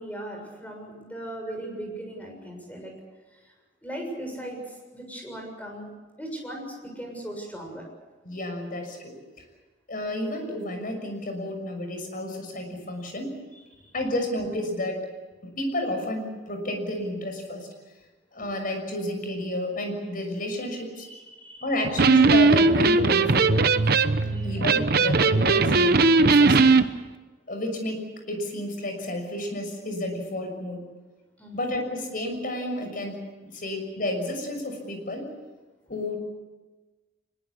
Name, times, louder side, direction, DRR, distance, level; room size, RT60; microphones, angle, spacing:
voice 1, 0.0-2.9 3.8-4.6 4.9-5.9 6.2-6.7 7.0-7.9 21.0-21.7 24.2-24.6 31.4-31.7, right 1 dB, 10° left, 2 dB, 7.0 m, -38 dB
voice 2, 8.2-9.1 9.9-13.3 13.9-15.0 15.4-17.7 18.3-21.1 21.6-23.6 24.4-26.6 27.5-30.9 31.5-33.2 33.5-35.2 35.9-36.2, left 1 dB, 50° left, 4 dB, 6.4 m, -31 dB
Electric guitar, 21.8-26.9, right 3 dB, 55° right, 1.0 m, -19 dB
24.0 x 22.0 x 8.5 m, 1.2 s
head